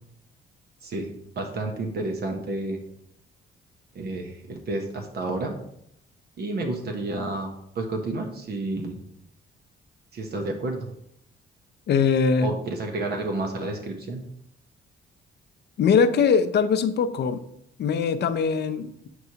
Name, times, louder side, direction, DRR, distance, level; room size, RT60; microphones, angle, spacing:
voice 1, 0.8-2.8 3.9-5.6 6.4-9.0 10.1-10.9 12.4-14.2, right 2 dB, 55° right, 3 dB, 0.9 m, -30 dB
voice 2, 11.9-12.5 15.8-17.4 17.8-19.1, left 6 dB, 60° left, 10 dB, 0.6 m, -22 dB
7.9 x 4.6 x 2.8 m, 0.74 s
cardioid pair, 90°, 20 cm